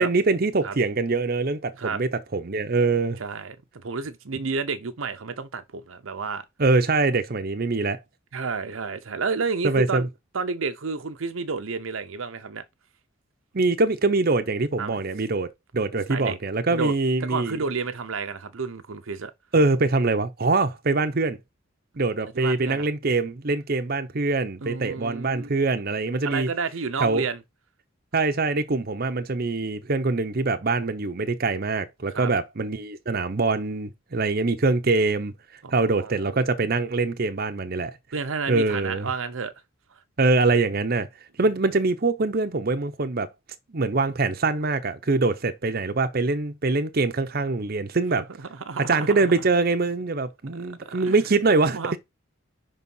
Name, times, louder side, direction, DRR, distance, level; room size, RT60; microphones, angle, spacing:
voice 1, 0.0-3.2 6.6-8.0 9.6-10.1 13.5-15.5 15.7-17.6 19.5-21.4 22.0-26.5 27.0-27.2 28.1-35.3 35.7-37.9 38.5-39.1 40.2-41.1 41.4-43.3 43.7-48.3 48.9-52.0, right 3 dB, 45° right, 0.7 m, -23 dB
voice 2, 3.2-6.4 8.3-10.1 10.3-12.6 14.8-15.0 16.1-16.4 16.7-17.0 17.2-19.3 22.4-22.9 24.6-25.5 26.2-27.4 32.1-32.3 35.6-36.3 38.1-39.5 48.4-49.2 50.9-51.1 51.7-52.0, right 4 dB, 80° right, 0.8 m, -30 dB
5.5 x 4.1 x 5.5 m
head